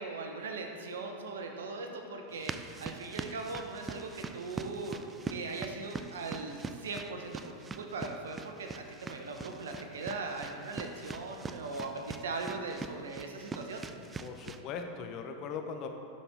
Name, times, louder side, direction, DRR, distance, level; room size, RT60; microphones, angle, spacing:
voice 1, 0.0-5.0 5.3-13.8, right 3 dB, 80° right, 3 dB, 0.8 m, -39 dB
sound 1, 2.3-14.6, right 4 dB, 20° right, 0.4 m, -43 dB
voice 2, 14.2-15.9, left 5 dB, 45° left, 5 dB, 0.8 m, -39 dB
11.5 x 4.2 x 3.6 m, 2.6 s
hypercardioid pair, 100°, 0 cm